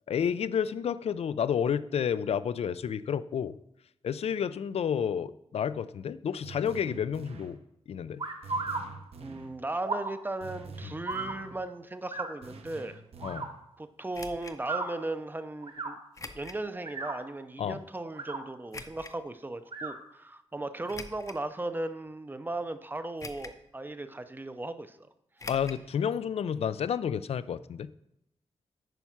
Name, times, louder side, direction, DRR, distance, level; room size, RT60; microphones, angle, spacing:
voice 1, 0.1-3.6 4.0-7.6 7.9-8.3 10.8-11.0 13.2-13.5 17.6-17.8 25.5-27.9, left 8 dB, 75° left, 15 dB, 0.4 m, -30 dB
sound 1, 6.4-7.6 8.4-9.6 10.4-11.6 12.4-13.6, right 4 dB, 70° right, 0.9 m, -46 dB
sound 2, 8.2-8.8 9.8-10.1 11.1-11.3 12.1-12.3 13.2-13.5 14.6-14.9 15.6-15.9 16.7-17.2 18.0-18.4 19.7-19.9, right 3 dB, 55° right, 1.4 m, -34 dB
voice 2, 9.2-13.0 13.8-16.0 16.3-25.0 25.4-25.5, right 2 dB, 20° right, 10 dB, 0.5 m, -37 dB
sound 3, 14.1-14.6 16.1-16.6 17.2-17.3 18.7-19.2 20.9-21.5 22.1-22.2 23.2-23.7 23.9-24.0 25.4-25.8 26.1-26.2 26.5-26.6, left 3 dB, 30° left, 0.7 m, -44 dB
9.1 x 5.5 x 5.8 m, 0.81 s
wide cardioid pair, 120°, 11 cm